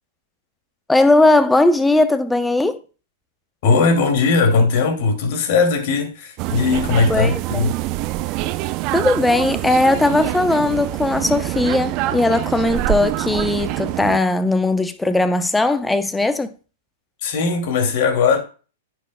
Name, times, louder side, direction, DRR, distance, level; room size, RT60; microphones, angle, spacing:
voice 1, 0.9-2.8 7.1-7.6 8.9-16.5, left 2 dB, 5° left, 0.7 m, -18 dB
voice 2, 3.6-7.7 17.2-18.4, left 4 dB, 55° left, 2.4 m, -18 dB
sound 1, 6.4-14.2, right 16 dB, 40° right, 0.4 m, -25 dB
9.8 x 6.8 x 2.2 m
hypercardioid pair, 120°, 0 cm